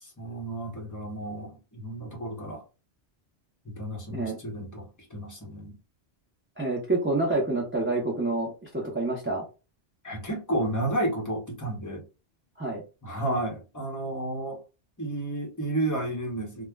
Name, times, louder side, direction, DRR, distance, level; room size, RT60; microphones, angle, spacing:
voice 1, 0.0-2.6 3.6-5.8 10.0-12.0 13.0-14.6 15.0-16.7, right 1 dB, 20° left, 0.7 m, -32 dB
voice 2, 6.6-9.4 12.6-12.8, right 2 dB, 15° right, 0.5 m, -28 dB
2.3 x 2.0 x 3.3 m
omnidirectional pair, 1.1 m